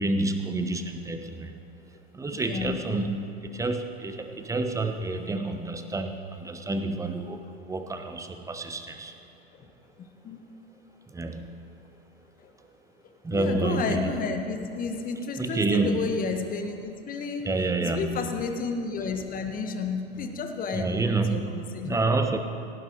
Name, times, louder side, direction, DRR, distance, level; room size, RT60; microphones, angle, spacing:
voice 1, 0.0-1.6 2.1-9.1 11.1-11.8 13.2-14.1 15.4-16.1 17.4-18.4 20.7-22.4, right 3 dB, 10° right, 6 dB, 1.1 m, -29 dB
voice 2, 2.3-2.8 10.2-10.4 12.4-12.5 13.3-17.5 17.8-22.0, left 5 dB, 30° left, 5 dB, 1.5 m, -31 dB
17.5 x 11.5 x 4.7 m, 2.5 s
figure-of-eight pair, 90°, 31 cm